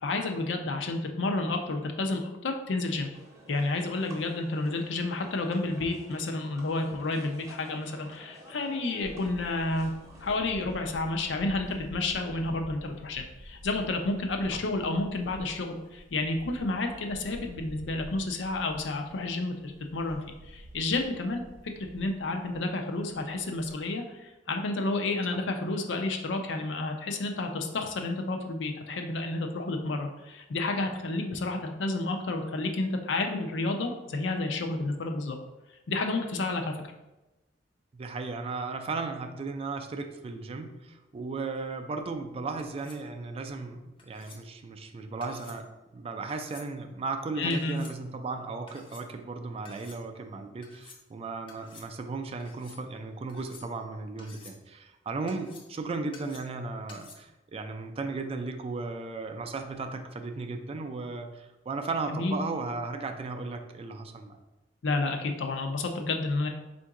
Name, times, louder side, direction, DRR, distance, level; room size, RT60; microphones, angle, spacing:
voice 1, 0.0-3.1 3.5-9.9 10.2-20.2 20.5-21.4 21.8-35.4 35.9-36.8 47.4-47.8 62.1-62.4 64.8-66.5, left 2 dB, 80° left, 4 dB, 0.5 m, -30 dB
sound 1, 3.1-10.4, equal, 15° right, 0.7 m, -51 dB
Camera, 9.0-23.8, equal, 80° right, 0.6 m, -49 dB
voice 2, 37.9-64.4, right 3 dB, 35° right, 6 dB, 0.3 m, -36 dB
sound 2, 42.6-43.1 44.0-44.4 45.2-45.6 46.3-46.7 47.5-48.0 48.7-49.0 49.6-50.0 50.6-51.0 51.5-51.9 52.4-52.8 53.3-53.9 54.2-54.6 55.3-55.8 56.1-56.6 56.9-57.1, left 4 dB, 30° left, 0.5 m, -52 dB
3.7 x 2.6 x 4.6 m, 1.0 s
head